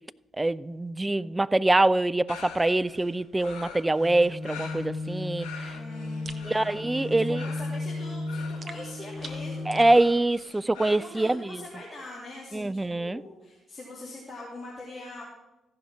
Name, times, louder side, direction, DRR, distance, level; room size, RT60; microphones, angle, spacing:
voice 1, 0.4-5.8 6.4-7.4 9.7-11.6 12.5-13.2, right 2 dB, 15° right, 0.3 m, -24 dB
sound 1, 2.3-11.0, left 6 dB, 70° left, 1.7 m, -45 dB
sound 2, 4.0-9.9, left 2 dB, ahead, 1.5 m, -35 dB
voice 2, 5.7-9.9 10.8-15.2, left 2 dB, 20° left, 2.8 m, -43 dB
sound 3, 6.2-6.5 8.6-10.0, right 3 dB, 40° right, 0.9 m, -43 dB
14.0 x 5.4 x 6.1 m
figure-of-eight pair, 40°, 0 cm